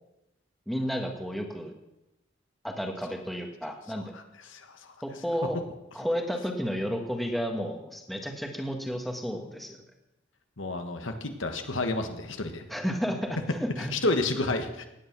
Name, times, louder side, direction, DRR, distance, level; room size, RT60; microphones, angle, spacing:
voice 1, 0.7-1.7 2.6-4.1 5.0-5.6 5.9-9.8 12.7-13.9, equal, ahead, 2 dB, 1.6 m, -32 dB
voice 2, 3.9-4.9 10.6-12.7 13.8-14.9, left 2 dB, 80° left, 6 dB, 1.5 m, -31 dB
17.0 x 9.5 x 6.1 m, 0.93 s
head